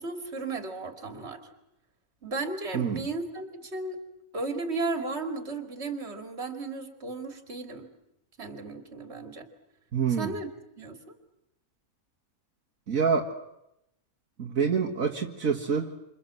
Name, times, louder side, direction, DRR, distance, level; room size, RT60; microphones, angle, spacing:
voice 1, 0.0-1.4 2.2-4.0 4.3-7.9 8.4-9.5 10.2-10.5 10.8-11.0, right 3 dB, 50° right, 6 dB, 2.8 m, -34 dB
voice 2, 2.7-3.1 9.9-10.3 12.9-13.3 14.4-16.0, right 6 dB, 70° right, 0 dB, 2.1 m, -27 dB
28.0 x 27.5 x 7.7 m, 0.86 s
omnidirectional pair, 1.5 m